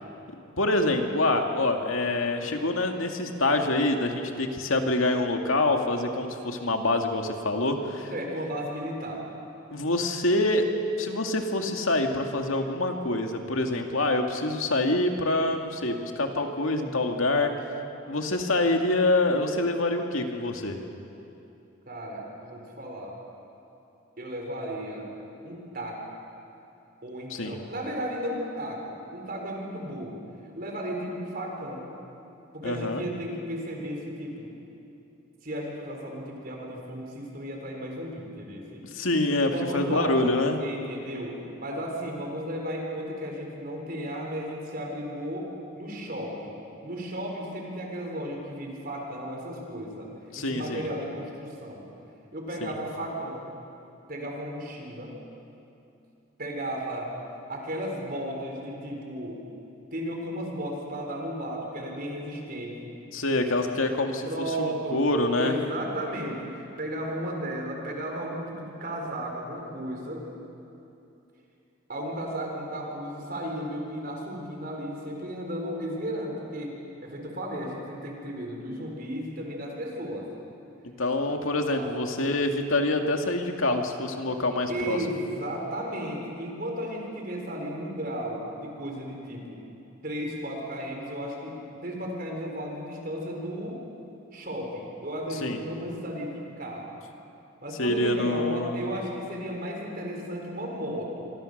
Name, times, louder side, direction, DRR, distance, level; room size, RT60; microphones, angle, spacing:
voice 1, 0.6-8.1 9.7-10.6 11.0-17.5 18.1-20.8 27.3-27.6 32.6-33.0 38.9-40.6 50.3-50.9 52.6-52.7 63.1-65.6 81.0-85.0 95.3-95.6 97.8-98.9, left 2 dB, 90° left, 3 dB, 2.3 m, -26 dB
voice 2, 8.1-9.3 21.9-23.2 24.2-25.1 25.4-26.0 27.0-30.2 30.5-31.9 32.5-34.6 35.4-38.8 39.5-40.2 40.6-50.1 50.4-51.9 52.3-53.5 54.1-55.2 56.4-57.1 57.5-59.4 59.9-63.0 64.2-65.1 65.3-70.2 71.9-76.8 77.0-80.3 81.7-81.9 84.7-89.6 90.0-93.8 94.3-96.9 97.6-101.3, equal, 45° right, 0 dB, 4.1 m, -34 dB
27.5 x 24.0 x 6.7 m, 2.8 s
head